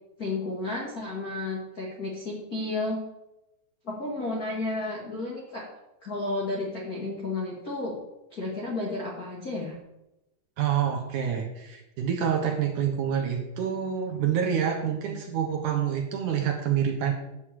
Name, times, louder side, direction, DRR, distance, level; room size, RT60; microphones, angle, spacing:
voice 1, 0.2-3.0 3.8-5.6 6.0-8.0 8.3-9.7, left 2 dB, 40° left, -3 dB, 1.3 m, -32 dB
voice 2, 10.6-17.1, right 8 dB, 70° right, 2 dB, 2.0 m, -27 dB
11.0 x 6.3 x 7.6 m, 0.94 s
omnidirectional pair, 5.0 m